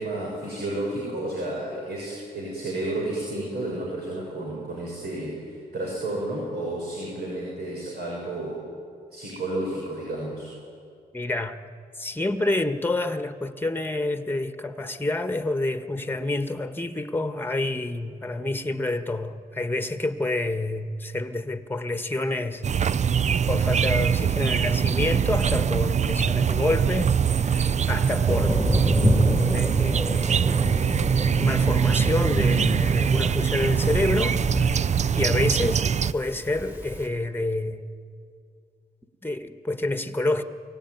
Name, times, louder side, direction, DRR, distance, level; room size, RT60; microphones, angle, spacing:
voice 1, 0.0-8.6 9.1-10.5, right 1 dB, 70° right, 6.1 m, -31 dB
voice 2, 11.1-11.6 12.0-22.6 23.5-27.2 27.4-28.5 28.8-30.7 31.4-34.7 35.1-37.9 39.2-40.4, left 2 dB, 10° left, 1.5 m, -28 dB
sound 1, 22.6-36.1, right 7 dB, 40° right, 0.5 m, -23 dB
Thunder, 28.3-37.0, equal, 10° right, 3.1 m, -28 dB
23.0 x 17.0 x 9.4 m
cardioid pair, 60°, 17 cm